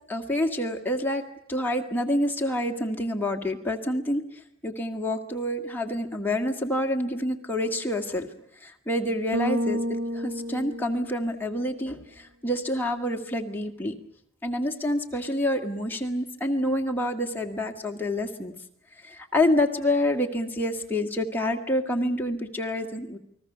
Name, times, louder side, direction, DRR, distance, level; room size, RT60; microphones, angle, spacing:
voice 1, 0.1-1.2 1.5-8.3 8.6-13.9 14.4-18.5 19.0-23.2, left 1 dB, 10° left, 1 dB, 2.0 m, -27 dB
Bass guitar, 9.3-11.7, equal, 85° right, 1.3 m, -30 dB
29.0 x 20.5 x 6.8 m, 0.75 s
head